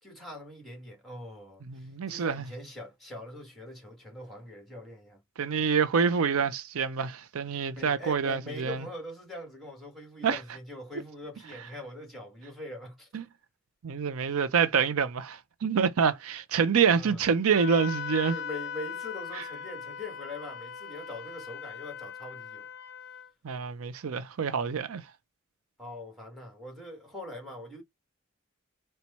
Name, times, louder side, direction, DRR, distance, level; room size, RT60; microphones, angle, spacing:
voice 1, 0.0-5.2 7.7-13.1 14.2-14.4 16.9-17.2 18.3-22.7 25.8-27.8, left 1 dB, ahead, 1.5 m, -42 dB
voice 2, 1.7-2.4 5.4-8.8 10.2-10.4 13.1-13.2 13.8-18.3 23.4-25.0, right 6 dB, 80° right, 0.5 m, -26 dB
Wind instrument woodwind instrument, 17.5-23.3, left 7 dB, 50° left, 0.5 m, -39 dB
4.4 x 2.2 x 4.0 m
head